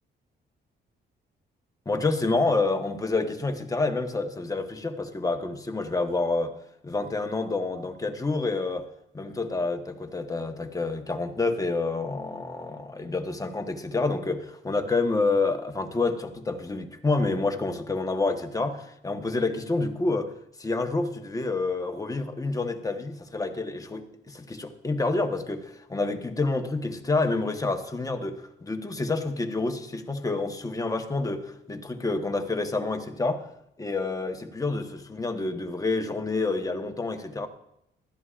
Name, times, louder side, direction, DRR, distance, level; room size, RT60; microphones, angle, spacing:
voice 1, 1.9-6.5 6.8-8.9 9.1-20.3 20.6-33.5 33.8-37.5, left 3 dB, 15° left, 5 dB, 1.1 m, -28 dB
20.0 x 12.5 x 2.5 m, 0.78 s
cardioid pair, 90°, 20 cm